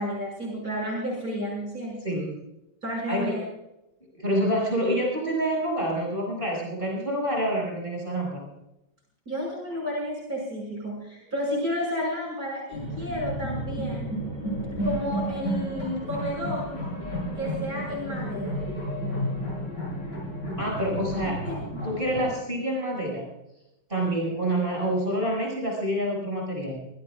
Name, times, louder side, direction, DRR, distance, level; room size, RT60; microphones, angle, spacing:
voice 1, 0.0-2.1 2.8-3.4 9.3-14.1 14.8-16.7 17.4-18.6 21.2-21.8, left 1 dB, 55° right, -3 dB, 6.9 m, -31 dB
voice 2, 2.0-2.4 3.1-3.4 4.1-8.5 20.6-21.4 21.8-23.3 23.9-26.8, right 1 dB, 30° right, -3 dB, 6.9 m, -27 dB
sound 1, 12.7-22.3, right 1 dB, 45° left, 8.3 m, -32 dB
25.5 x 17.5 x 2.5 m, 0.90 s
omnidirectional pair, 1.9 m